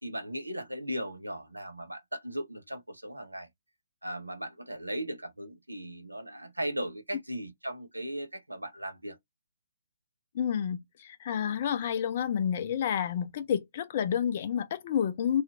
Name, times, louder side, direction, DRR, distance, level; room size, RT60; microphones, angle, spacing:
voice 1, 0.0-3.5 4.0-9.2, equal, 80° right, 0.7 m, -37 dB
voice 2, 10.3-15.4, left 8 dB, 40° left, 0.4 m, -29 dB
2.8 x 2.4 x 2.4 m
figure-of-eight pair, 130°, 0 cm